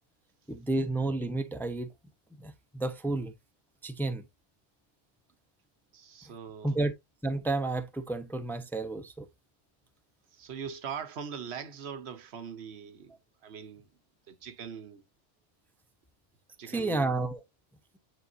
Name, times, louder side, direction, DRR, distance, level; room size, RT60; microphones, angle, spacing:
voice 1, 0.5-1.9 2.4-3.3 3.8-4.2 6.6-6.9 7.2-9.3 16.7-17.4, right 2 dB, ahead, 0.6 m, -31 dB
voice 2, 5.9-6.8 10.3-13.1 13.4-13.9 14.3-15.0 16.6-17.1, right 7 dB, 85° right, 1.1 m, -41 dB
9.2 x 3.8 x 2.6 m
omnidirectional pair, 1.1 m